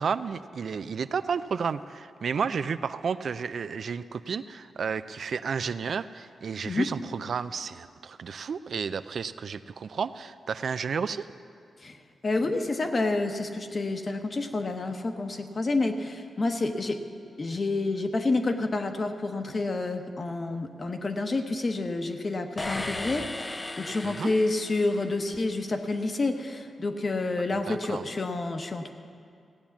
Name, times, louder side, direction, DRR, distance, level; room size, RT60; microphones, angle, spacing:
voice 1, 0.0-11.3 24.0-24.3 27.7-28.0, right 6 dB, 60° right, 13 dB, 0.4 m, -32 dB
voice 2, 12.2-17.0 17.4-28.9, left 2 dB, 35° left, 6 dB, 1.0 m, -29 dB
sound 1, 22.6-25.4, left 2 dB, 20° left, 0.5 m, -36 dB
16.5 x 8.8 x 7.1 m, 2.3 s
wide cardioid pair, 110°, 0 cm